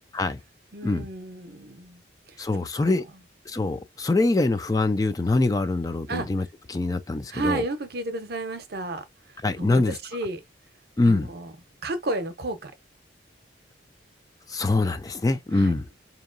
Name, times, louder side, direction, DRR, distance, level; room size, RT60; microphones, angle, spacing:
voice 1, 0.7-2.0 2.8-3.0 6.1-6.3 7.3-9.0 9.6-10.4 11.0-11.5 11.8-12.7 15.6-15.7, right 2 dB, 55° right, 0.8 m, -32 dB
voice 2, 2.4-3.0 3.5-7.6 9.4-10.0 11.0-11.3 14.5-15.9, left 2 dB, 20° left, 0.3 m, -24 dB
4.5 x 2.8 x 2.5 m
head